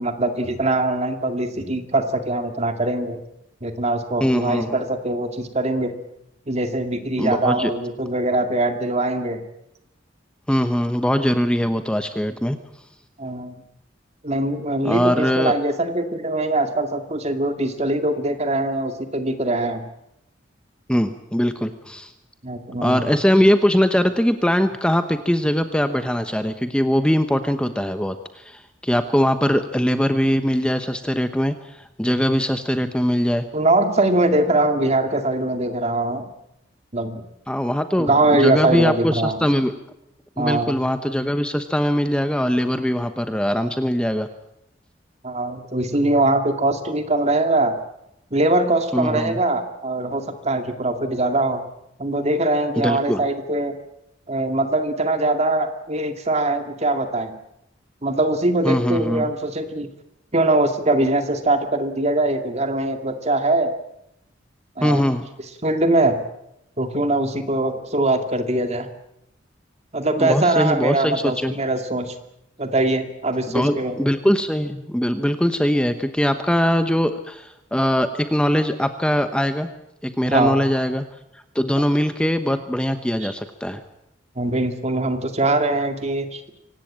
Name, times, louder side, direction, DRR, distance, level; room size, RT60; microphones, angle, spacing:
voice 1, 0.0-3.2 3.6-5.9 6.5-9.4 13.2-13.6 14.2-19.8 22.4-23.1 33.5-36.3 36.9-37.2 38.0-39.4 40.4-40.8 45.2-47.8 48.3-51.6 52.0-53.7 54.3-57.3 58.0-59.9 60.3-63.7 64.8-65.0 65.6-66.2 66.8-68.9 69.9-72.1 72.6-74.0 80.2-80.6 83.2-83.3 84.4-86.4, right 2 dB, 35° right, 7 dB, 2.3 m, -22 dB
voice 2, 4.2-4.8 7.2-7.7 10.5-12.6 14.8-15.5 20.9-22.1 22.8-33.5 37.5-39.7 40.4-44.3 48.9-49.4 52.8-53.2 58.6-59.3 64.8-65.3 70.2-71.6 73.5-79.7 80.0-81.1 81.5-83.8, equal, 5° left, 9 dB, 1.0 m, -21 dB
25.0 x 18.0 x 8.8 m, 0.82 s
head